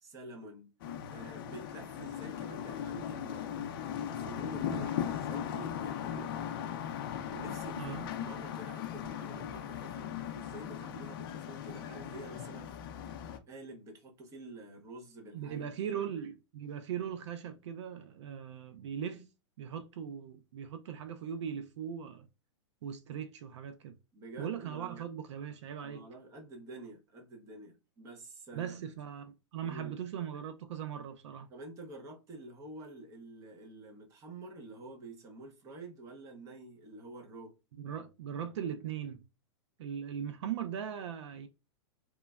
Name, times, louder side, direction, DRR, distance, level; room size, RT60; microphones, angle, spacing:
voice 1, 0.0-0.7 1.1-3.7 4.1-6.3 7.3-12.7 13.5-16.0 24.1-25.0 25.8-28.7 29.6-30.0 31.5-37.5, right 2 dB, 20° right, 0.6 m, -48 dB
sound 1, 0.8-13.4, left 9 dB, 45° left, 0.4 m, -38 dB
voice 2, 15.3-19.3 19.6-22.3 22.8-24.0 24.4-26.0 28.5-31.5 37.8-39.2 39.8-41.5, right 8 dB, 70° right, 0.4 m, -39 dB
3.1 x 2.2 x 2.2 m
hypercardioid pair, 150°, 16 cm